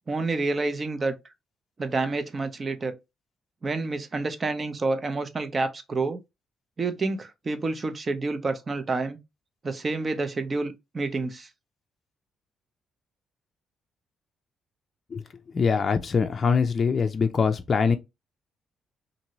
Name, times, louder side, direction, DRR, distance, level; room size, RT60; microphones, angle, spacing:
voice 1, 0.1-1.2 1.8-3.0 3.6-6.2 6.8-9.2 9.6-11.5, right 3 dB, 35° right, 0.6 m, -28 dB
voice 2, 15.5-18.0, left 5 dB, 40° left, 0.4 m, -23 dB
2.7 x 2.6 x 2.9 m
cardioid pair, 90°, 0 cm